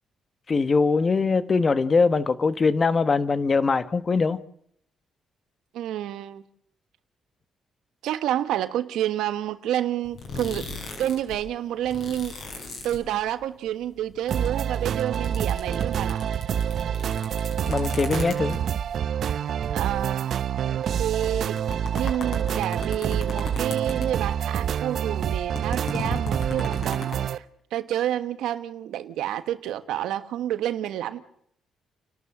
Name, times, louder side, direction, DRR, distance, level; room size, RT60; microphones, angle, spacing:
voice 1, 0.5-4.4 17.7-18.6, left 4 dB, 35° left, 1.2 m, -22 dB
voice 2, 5.7-6.5 8.0-12.4 12.8-16.2 19.7-20.4 21.0-21.6 21.9-27.4 27.7-31.2, right 11 dB, 85° right, 1.3 m, -29 dB
sound 1, 10.0-11.4 11.6-13.6 13.8-18.8 19.4-19.5 19.7-19.8 20.5-20.6 21.0-24.5 24.8-27.2, left 4 dB, 60° left, 7.3 m, -37 dB
sound 2, 14.3-27.4, right 9 dB, 65° right, 0.7 m, -27 dB
29.5 x 12.0 x 7.7 m
cardioid pair, 90°, 0 cm